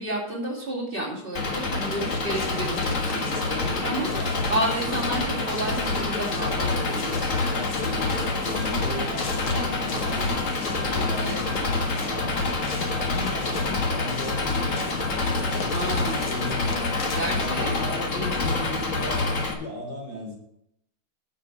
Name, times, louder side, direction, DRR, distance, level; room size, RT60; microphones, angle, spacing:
voice 1, 0.0-7.4 10.9-11.4 15.7-16.2 17.1-17.7, right 1 dB, 30° right, -4 dB, 3.2 m, -31 dB
Engine, 1.4-19.5, left 3 dB, 50° left, 1.8 m, -27 dB
sound 1, 1.8-17.5, left 4 dB, 90° left, 2.0 m, -41 dB
voice 2, 4.1-4.4 7.4-12.6 12.9-16.0 16.3-17.1 17.4-20.4, left 1 dB, 70° left, 0 dB, 3.8 m, -36 dB
10.0 x 7.6 x 5.2 m, 0.76 s
omnidirectional pair, 1.8 m